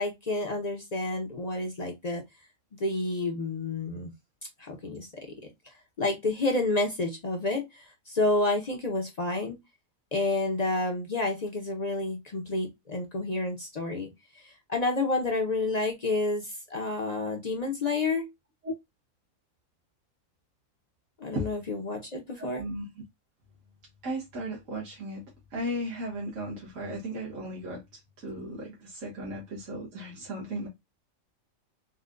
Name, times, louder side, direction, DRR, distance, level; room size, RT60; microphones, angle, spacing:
voice 1, 0.0-2.2 2.8-4.1 4.6-5.3 6.0-9.6 10.1-14.1 14.3-18.3 21.2-22.6, left 2 dB, 45° left, 0.5 m, -29 dB
voice 2, 22.4-22.8 24.0-25.2 25.5-27.8 28.2-30.7, right 1 dB, 70° right, 1.5 m, -35 dB
4.0 x 2.1 x 2.4 m
omnidirectional pair, 1.4 m